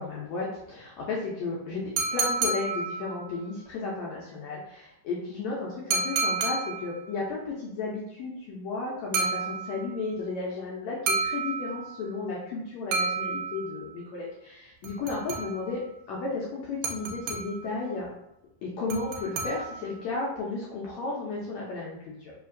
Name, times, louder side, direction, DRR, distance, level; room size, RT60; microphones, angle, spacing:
voice 1, 0.0-15.8 16.1-18.1 18.6-22.3, left 3 dB, 80° left, -4 dB, 1.6 m, -34 dB
sound 1, 2.0-3.4 5.9-7.1 9.1-10.0 11.1-12.1 12.9-13.9 14.8-15.8 16.8-17.8 18.9-20.0, right 4 dB, 85° right, 2.2 m, -31 dB
4.8 x 2.8 x 2.5 m, 0.84 s
omnidirectional pair, 3.8 m